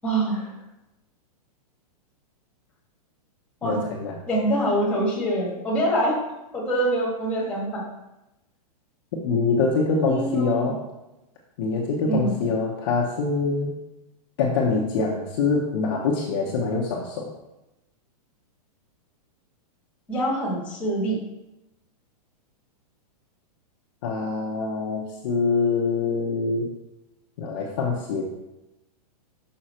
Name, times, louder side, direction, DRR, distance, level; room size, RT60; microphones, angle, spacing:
voice 1, 0.0-0.4 3.6-3.8 4.3-6.1 6.5-7.8 9.9-10.7 12.1-12.3 20.1-21.2, right 1 dB, 5° left, -5 dB, 1.6 m, -25 dB
voice 2, 3.6-4.2 9.1-10.8 11.6-13.7 14.4-17.3 24.0-26.7 27.4-28.2, left 4 dB, 35° left, -2 dB, 0.9 m, -24 dB
6.4 x 5.4 x 4.3 m, 0.96 s
supercardioid pair, 175°, 20 cm